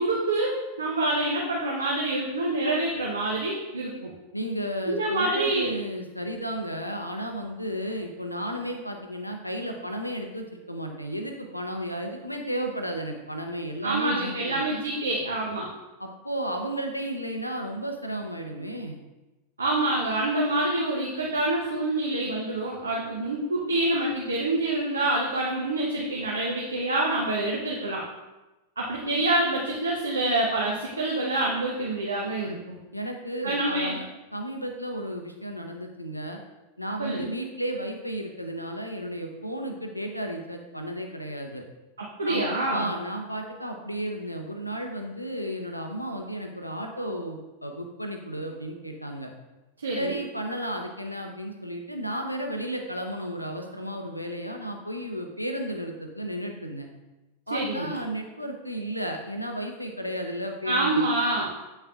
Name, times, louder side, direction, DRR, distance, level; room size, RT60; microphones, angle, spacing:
voice 1, 0.0-4.1 4.9-5.7 13.8-15.7 19.6-28.0 28.8-32.8 33.4-33.9 37.0-37.3 42.0-42.9 49.8-50.2 57.5-58.0 60.6-61.5, right 2 dB, 75° right, -2 dB, 0.8 m, -26 dB
voice 2, 4.3-14.6 16.0-19.0 32.9-34.0 34.3-36.4 36.8-41.6 42.2-42.4 42.7-49.3 49.9-56.9 57.5-61.1, right 1 dB, 90° left, 3 dB, 0.7 m, -33 dB
8.1 x 5.5 x 2.4 m, 1.1 s
figure-of-eight pair, 90°, 0 cm